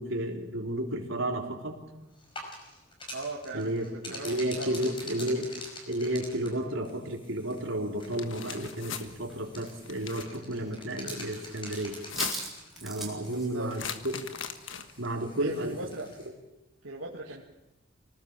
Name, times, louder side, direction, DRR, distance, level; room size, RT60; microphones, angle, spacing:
voice 1, 0.0-1.8 3.5-5.5 5.9-12.0 12.8-14.3 15.0-15.8, right 1 dB, 75° right, 1 dB, 3.7 m, -32 dB
sound 1, 2.1-16.3, left 1 dB, 25° left, 5.3 m, -46 dB
voice 2, 3.1-4.9 5.2-5.4 13.2-13.7 15.4-16.1 16.8-17.4, right 2 dB, 90° right, -2 dB, 2.4 m, -39 dB
sound 2, 8.0-9.1 9.8-10.4 11.9-12.6 13.7-15.1, left 7 dB, 70° left, 1.4 m, -38 dB
sound 3, 8.6-10.7 11.0-11.5 11.7-13.5, right 3 dB, ahead, 4.3 m, -40 dB
25.0 x 18.5 x 7.4 m, 0.95 s
head